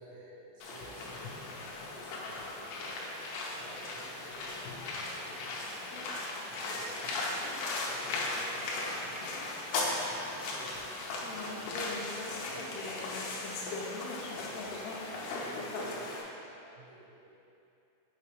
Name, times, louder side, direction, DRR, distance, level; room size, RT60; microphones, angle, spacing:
voice 1, 0.0-11.8 12.3-13.7 14.4-17.4, right 1 dB, 80° right, -6 dB, 2.2 m, -53 dB
sound 1, 0.6-16.2, left 2 dB, 85° left, 2.8 m, -37 dB
6.9 x 5.6 x 3.3 m, 2.7 s
omnidirectional pair, 4.8 m